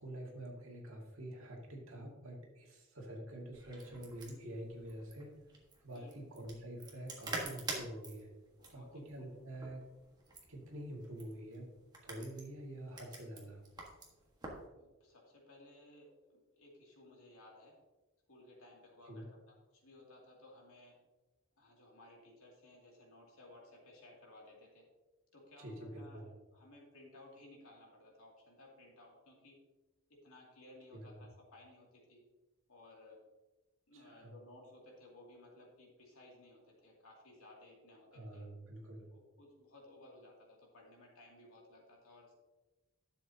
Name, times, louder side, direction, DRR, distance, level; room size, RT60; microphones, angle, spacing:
voice 1, 0.0-5.5 5.8-8.4 8.7-9.9 10.5-13.6 19.1-19.3 25.6-26.3 30.9-31.1 33.9-34.3 38.1-39.2, right 1 dB, 65° right, -1 dB, 2.1 m, -47 dB
sound 1, 3.5-14.7, right 2 dB, 20° right, 1.4 m, -48 dB
voice 2, 8.6-9.3 14.7-17.8 18.3-21.0 21.6-24.9 25.3-26.2 26.5-29.6 30.1-32.2 32.7-33.2 33.9-38.5 39.1-42.3, left 1 dB, 70° left, -2 dB, 2.6 m, -59 dB
11.5 x 7.2 x 2.8 m, 1.1 s
head